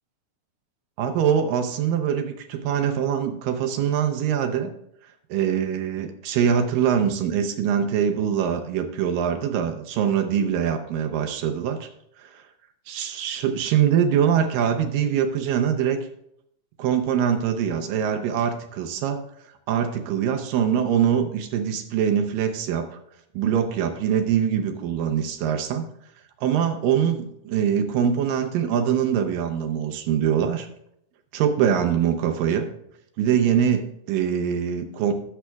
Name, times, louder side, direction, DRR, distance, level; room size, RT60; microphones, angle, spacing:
voice 1, 1.0-4.7 5.3-11.9 12.2-12.4 12.9-16.1 16.8-19.2 19.7-22.9 23.3-25.8 26.4-30.7 31.3-32.7 33.2-35.1, right 8 dB, 75° right, 5 dB, 2.3 m, -23 dB
17.0 x 7.4 x 2.3 m, 0.75 s
omnidirectional pair, 4.2 m